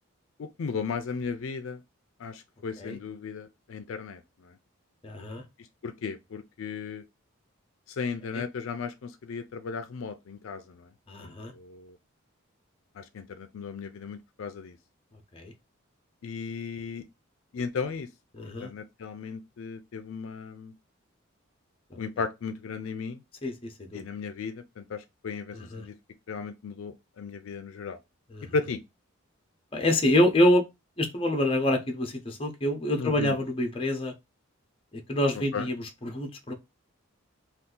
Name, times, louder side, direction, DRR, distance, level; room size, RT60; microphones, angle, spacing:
voice 1, 0.4-1.8 2.2-4.5 5.8-7.0 7.9-10.9 11.2-12.0 13.0-14.8 16.2-17.0 17.5-18.1 18.4-20.7 22.0-23.2 23.9-25.9 26.3-28.0 28.5-28.8 33.0-33.4 35.5-35.7, left 5 dB, 70° left, 0.4 m, -35 dB
voice 2, 5.0-5.4 8.3-8.4 11.1-11.5 15.3-15.5 18.4-18.7 23.4-23.5 23.9-24.0 25.5-25.9 28.3-28.5 29.7-30.6 31.0-34.1 35.1-36.5, left 1 dB, 25° left, 0.6 m, -26 dB
2.7 x 2.4 x 3.6 m
head